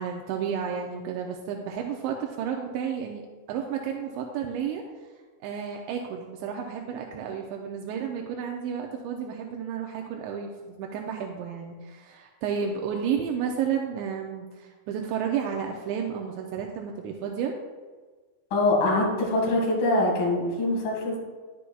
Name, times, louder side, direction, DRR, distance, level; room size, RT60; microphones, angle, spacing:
voice 1, 0.0-3.2 3.5-4.8 5.4-17.5, right 7 dB, 85° right, 1 dB, 2.6 m, -31 dB
voice 2, 18.5-21.2, left 2 dB, 80° left, -2 dB, 1.1 m, -24 dB
11.5 x 8.5 x 2.3 m, 1.4 s
omnidirectional pair, 5.8 m